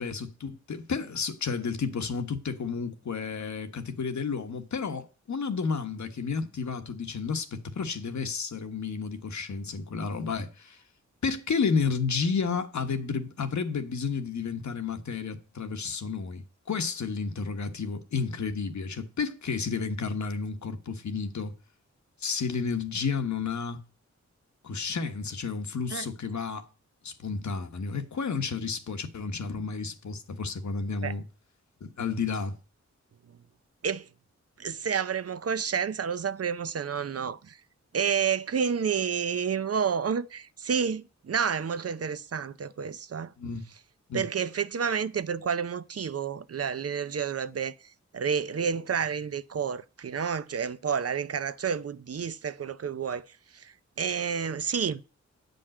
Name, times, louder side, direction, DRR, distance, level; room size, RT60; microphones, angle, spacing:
voice 1, 0.0-10.8 11.2-21.5 22.2-23.8 24.6-26.7 27.0-31.2 31.8-32.5 43.4-43.7 44.1-44.2, left 5 dB, 70° left, 1.3 m, -31 dB
voice 2, 34.6-37.6 37.9-43.3 44.1-47.7 48.1-53.3 53.5-55.1, right 7 dB, 55° right, 0.6 m, -30 dB
8.7 x 5.4 x 7.6 m
wide cardioid pair, 95°, 30 cm